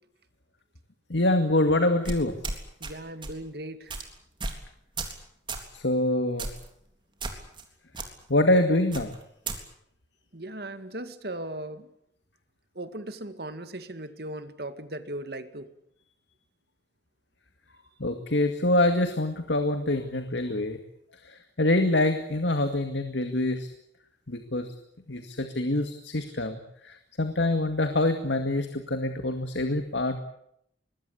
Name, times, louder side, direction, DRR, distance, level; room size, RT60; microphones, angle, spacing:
voice 1, 1.1-2.3 5.7-6.5 8.3-9.1 18.0-20.8 21.2-23.7 24.3-24.7 25.1-30.2, left 1 dB, 75° left, 7 dB, 2.2 m, -25 dB
sound 1, 2.0-2.9 3.2-3.4 3.9-4.0 4.4-4.6 5.0-5.2 5.5-5.7 6.4-6.7 7.2-7.6 7.9-8.1 8.9-9.6, right 3 dB, 25° right, 3.5 m, -34 dB
voice 2, 2.8-3.9 10.3-11.9 12.8-15.7, right 1 dB, 55° right, 10 dB, 2.2 m, -38 dB
24.5 x 20.5 x 8.6 m, 0.73 s
head